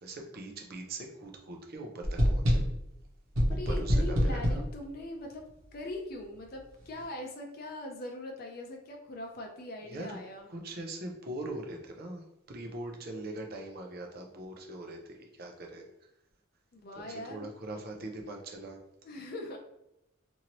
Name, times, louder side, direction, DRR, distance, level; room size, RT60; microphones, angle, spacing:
voice 1, 0.0-2.6 3.5-4.6 9.9-10.2 10.5-15.9 17.0-18.8, right 2 dB, 50° right, 2 dB, 0.6 m, -42 dB
sound 1, 2.0-2.9 3.3-4.7, equal, 90° right, 1.0 m, -26 dB
voice 2, 3.5-5.4 5.7-10.5 16.7-17.5 19.0-19.6, left 1 dB, 50° left, 2 dB, 0.5 m, -41 dB
2.9 x 2.6 x 2.9 m, 0.84 s
head